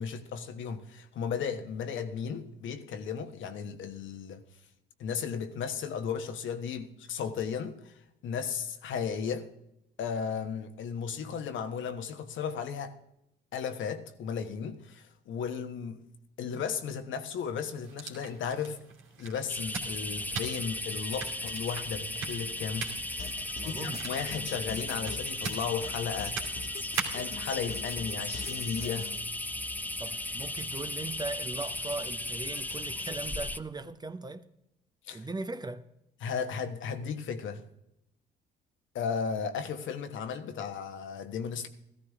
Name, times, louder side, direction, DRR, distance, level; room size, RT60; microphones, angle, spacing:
voice 1, 0.0-4.4 5.0-7.9 8.2-9.5 10.0-12.9 13.5-16.0 16.4-18.8 19.2-23.4 23.6-26.4 27.1-29.1 35.1-35.3 36.2-37.6 38.9-41.7, left 6 dB, 65° left, 1.3 m, -35 dB
sound 1, 17.8-27.4, right 5 dB, 70° right, 2.7 m, -42 dB
sound 2, 19.5-33.6, left 1 dB, 10° left, 0.7 m, -36 dB
sound 3, 23.2-29.2, left 6 dB, 45° left, 0.9 m, -44 dB
voice 2, 23.5-24.1 30.0-34.5 35.1-35.8, right 3 dB, 20° right, 0.9 m, -39 dB
14.5 x 13.5 x 3.6 m
supercardioid pair, 65°, 21 cm